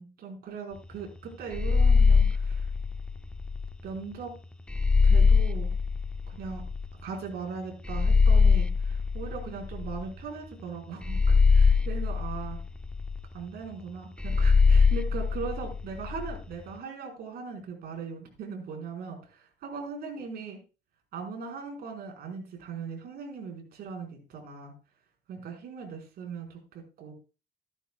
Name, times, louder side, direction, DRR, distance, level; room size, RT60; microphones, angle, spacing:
voice 1, 0.0-2.7 3.8-4.3 5.0-5.7 6.3-6.6 7.0-12.6 13.3-20.6 21.1-24.7 25.3-26.6 27.0-27.1, right 5 dB, 65° right, 2 dB, 4.8 m, -39 dB
sound 1, 1.5-3.7 4.7-6.9 7.9-10.2 11.0-13.2 14.2-16.4, left 4 dB, 5° left, 0.6 m, -22 dB
14.5 x 11.5 x 2.3 m, 0.32 s
cardioid pair, 110°, 17 cm